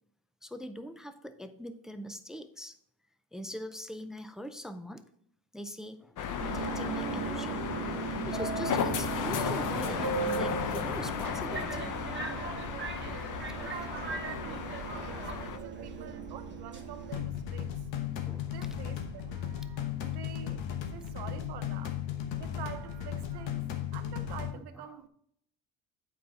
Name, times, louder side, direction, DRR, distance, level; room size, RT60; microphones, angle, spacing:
voice 1, 0.4-2.8 3.3-5.0 5.5-7.7 8.3-12.0 18.2-18.8 24.5-24.9, equal, ahead, 0.3 m, -42 dB
sound 1, 6.2-15.6, left 7 dB, 45° left, 0.7 m, -35 dB
Subway metro underground, 6.4-17.1, right 4 dB, 25° right, 1.2 m, -37 dB
voice 2, 13.5-17.9 18.5-20.6 20.9-21.9 22.4-25.1, right 9 dB, 60° right, 0.9 m, -47 dB
sound 2, 17.1-24.5, left 9 dB, 75° left, 1.2 m, -36 dB
8.6 x 4.8 x 4.1 m
cardioid pair, 135°, 45 cm